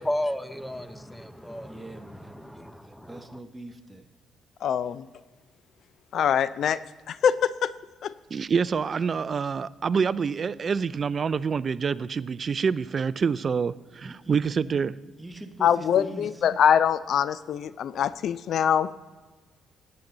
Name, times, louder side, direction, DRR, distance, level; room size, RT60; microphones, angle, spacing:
voice 1, 0.0-3.4, left 1 dB, 5° left, 13 dB, 0.7 m, -34 dB
voice 2, 1.6-2.5 2.8-4.0 14.0-14.4 15.2-16.5, right 2 dB, 10° right, 7 dB, 1.0 m, -42 dB
voice 3, 4.6-5.1 6.1-6.8 7.1-7.7 8.0-8.1 15.6-18.9, left 8 dB, 65° left, 16 dB, 0.3 m, -23 dB
voice 4, 8.3-15.0, right 6 dB, 45° right, 18 dB, 0.4 m, -26 dB
11.5 x 8.8 x 3.9 m, 1.3 s
cardioid pair, 90°, 0 cm